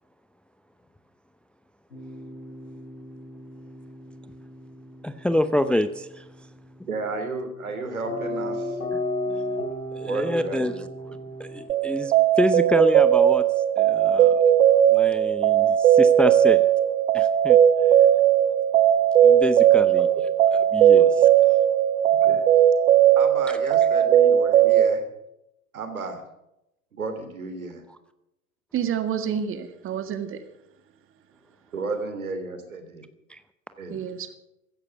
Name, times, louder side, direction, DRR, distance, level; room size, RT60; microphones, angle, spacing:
sound 1, 1.9-11.6, left 1 dB, 85° left, 4.1 m, -35 dB
voice 1, 5.0-6.2 9.9-10.7 11.4-13.4 13.8-14.4 14.9-16.7 17.1-17.6 19.2-20.1 20.5-21.3 33.3-33.4, left 1 dB, 5° left, 12 dB, 0.6 m, -27 dB
voice 2, 6.9-8.8 10.0-11.2 20.0-20.1 20.9-21.2 22.2-22.4 23.2-25.0 25.7-26.2 26.9-27.8 31.7-33.1 33.8-34.0, right 3 dB, 80° right, 8 dB, 3.1 m, -33 dB
sound 2, 11.7-24.9, right 10 dB, 65° right, 0.9 m, -18 dB
voice 3, 28.7-30.4 33.9-34.3, right 8 dB, 30° right, 9 dB, 1.9 m, -29 dB
16.0 x 14.0 x 5.9 m, 0.86 s
figure-of-eight pair, 85°, 42 cm